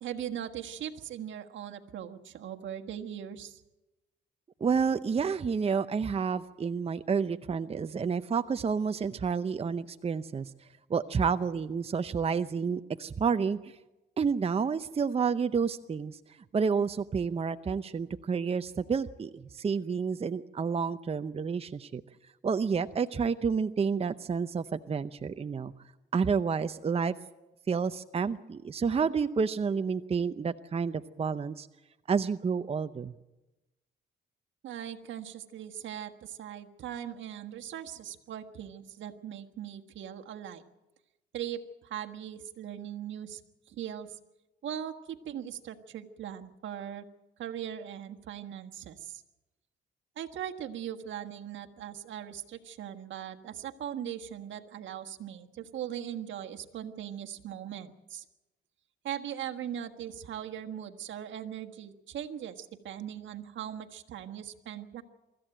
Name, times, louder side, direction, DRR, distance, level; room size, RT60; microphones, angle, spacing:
voice 1, 0.0-3.6 34.6-40.6 41.3-43.4 43.7-44.2 44.6-47.0 47.4-49.2 50.2-58.2 59.0-65.0, right 10 dB, 70° right, 5 dB, 1.5 m, -40 dB
voice 2, 4.6-10.5 10.9-13.8 14.2-16.2 16.5-22.0 22.4-25.7 26.1-27.2 27.7-31.7 32.1-33.1, right 5 dB, 30° right, 10 dB, 0.7 m, -30 dB
24.0 x 14.0 x 9.1 m, 1.0 s
cardioid pair, 90°, 20 cm